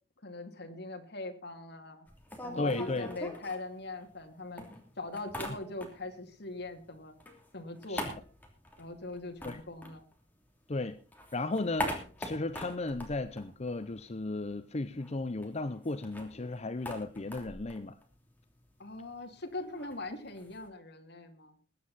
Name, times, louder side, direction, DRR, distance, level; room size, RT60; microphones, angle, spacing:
voice 1, 0.2-2.1 2.4-4.7 5.0-7.2 7.5-8.1 8.8-10.1 18.8-21.6, left 2 dB, 65° left, 4 dB, 2.4 m, -41 dB
sound 1, 2.1-4.3 4.6-6.2 6.5-10.6 11.0-14.3 14.5-14.6 14.9-20.7, left 1 dB, 10° left, 3.0 m, -42 dB
voice 2, 2.6-3.1 7.9-8.0 9.4-9.6 10.7-11.0 11.3-18.0, left 2 dB, 35° left, 11 dB, 0.7 m, -35 dB
21.0 x 9.5 x 4.2 m, 0.36 s
head